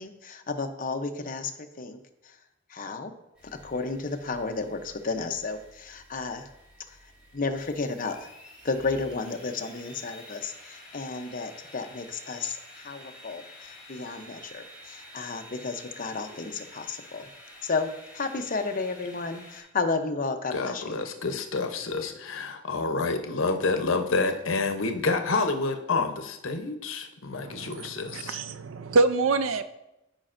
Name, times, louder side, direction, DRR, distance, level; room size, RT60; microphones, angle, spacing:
voice 1, 0.0-1.5 1.8-2.0 2.7-3.1 3.6-6.5 7.3-8.2 8.6-12.6 12.8-13.4 13.9-17.2 17.6-17.9 18.1-20.9, left 4 dB, 45° left, 6 dB, 0.7 m, -32 dB
sound 1, 3.3-19.6, left 1 dB, 5° right, 2.9 m, -50 dB
voice 2, 20.5-28.4, left 3 dB, 80° left, 6 dB, 0.8 m, -28 dB
voice 3, 27.3-29.6, right 3 dB, 85° right, 11 dB, 0.5 m, -26 dB
13.0 x 5.2 x 2.6 m, 0.90 s
head